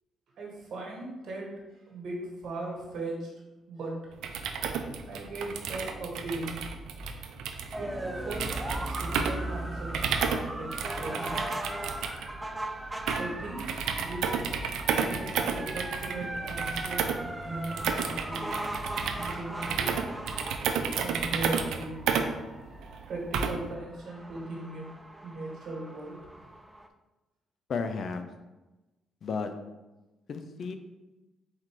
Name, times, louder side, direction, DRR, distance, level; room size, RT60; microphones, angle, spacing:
voice 1, 0.4-3.3 3.7-4.0 5.0-6.6 7.7-11.5 13.1-14.4 15.0-18.6 19.1-20.0 20.9-22.0 23.1-24.9 25.2-26.3, right 2 dB, 65° right, -2 dB, 1.3 m, -38 dB
sound 1, 4.1-23.7, right 6 dB, 85° right, 0.4 m, -32 dB
sound 2, 7.7-26.9, right 1 dB, 10° right, 0.4 m, -38 dB
voice 2, 27.7-28.2 29.2-29.5 30.3-30.7, left 5 dB, 55° left, 7 dB, 0.4 m, -32 dB
4.2 x 2.5 x 4.6 m, 1.1 s
cardioid pair, 90°, 0 cm